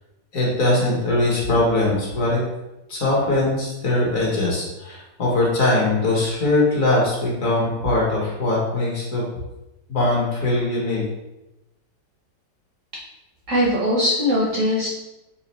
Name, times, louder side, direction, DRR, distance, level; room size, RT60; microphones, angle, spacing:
voice 1, 0.3-2.4 2.9-9.2 9.9-11.0, left 2 dB, 50° left, -4 dB, 1.3 m, -21 dB
voice 2, 13.5-14.9, left 1 dB, 60° right, -4 dB, 0.8 m, -20 dB
4.3 x 2.4 x 4.0 m, 0.96 s
omnidirectional pair, 2.0 m